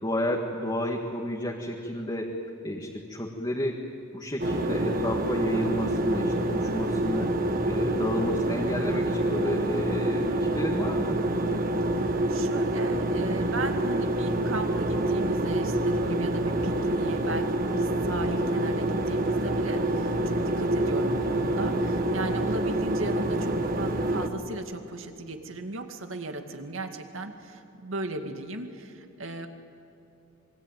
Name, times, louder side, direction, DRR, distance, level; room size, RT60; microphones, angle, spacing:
voice 1, 0.0-2.3 2.6-3.8 4.1-7.3 7.6-11.2, left 1 dB, 20° left, -1 dB, 1.9 m, -31 dB
sound 1, 4.4-24.3, right 1 dB, 40° right, 1.5 m, -27 dB
voice 2, 7.3-7.6 11.9-29.5, right 2 dB, 65° right, 5 dB, 2.2 m, -37 dB
26.5 x 22.5 x 9.2 m, 2.9 s
head